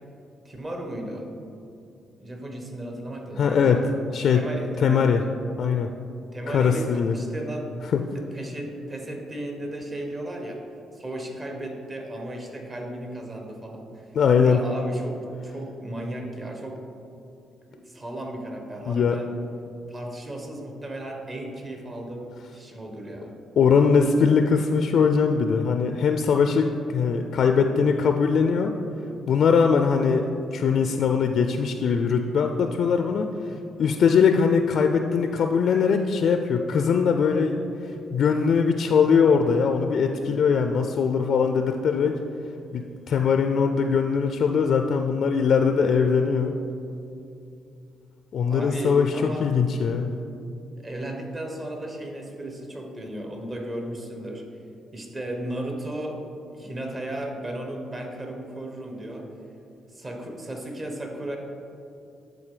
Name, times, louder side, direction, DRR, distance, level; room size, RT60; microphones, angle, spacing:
voice 1, 0.4-1.3 2.2-3.8 4.3-5.1 6.3-7.7 8.1-10.6 10.9-14.1 14.4-16.8 17.7-19.3 19.9-23.3 48.5-49.4 50.8-54.4 54.9-56.2 56.5-59.3 59.9-61.4, right 1 dB, 30° right, 2 dB, 1.3 m, -35 dB
voice 2, 3.4-3.8 4.1-4.4 4.8-5.2 5.6-5.9 6.5-7.2 7.9-8.0 14.1-14.6 18.9-19.2 23.6-28.7 29.3-42.2 42.7-46.5 48.3-50.1, left 6 dB, 60° left, 6 dB, 0.4 m, -21 dB
10.0 x 3.9 x 5.0 m, 2.6 s
cardioid pair, 90°, 0 cm